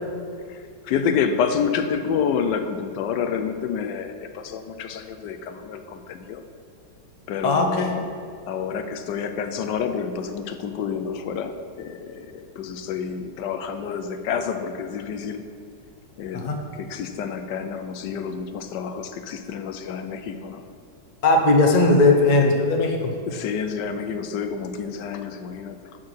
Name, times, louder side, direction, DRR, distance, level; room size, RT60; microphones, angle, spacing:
voice 1, 0.5-6.4 7.3-8.1 8.5-11.5 11.8-15.4 16.2-20.6 23.3-25.8, left 6 dB, 80° left, 8 dB, 1.2 m, -28 dB
voice 2, 7.4-7.9 16.3-16.6 21.2-23.1, left 2 dB, 40° left, 2 dB, 0.6 m, -18 dB
7.5 x 6.2 x 6.2 m, 2.2 s
omnidirectional pair, 1.9 m